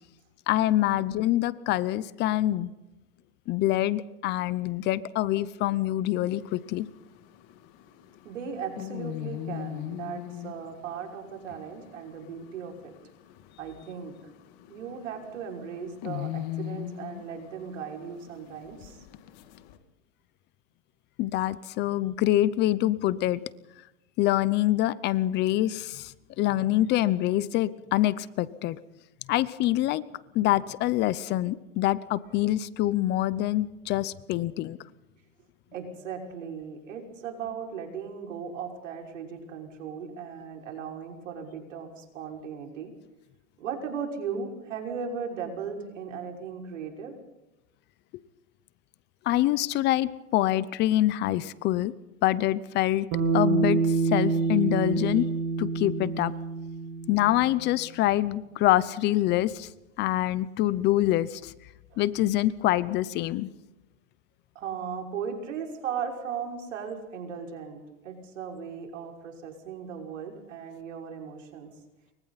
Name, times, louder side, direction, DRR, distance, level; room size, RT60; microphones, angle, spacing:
voice 1, 0.5-2.7 3.5-6.9 21.2-23.4 24.2-28.8 29.3-30.0 30.3-34.8 49.3-51.9 52.2-53.1 53.3-55.3 55.6-56.3 57.1-59.7 60.0-61.5 62.0-63.5, left 14 dB, 30° left, 18 dB, 0.7 m, -25 dB
sound 1, 6.3-19.8, left 12 dB, 45° left, 2.3 m, -41 dB
voice 2, 8.2-12.9 13.6-14.3 14.7-19.1 35.7-42.9 43.6-47.1 61.9-62.0 64.5-71.7, right 6 dB, 85° right, 2 dB, 5.9 m, -37 dB
Bass guitar, 53.1-57.5, right 4 dB, 40° right, 3.4 m, -27 dB
29.0 x 24.0 x 4.2 m, 0.98 s
supercardioid pair, 145°, 37 cm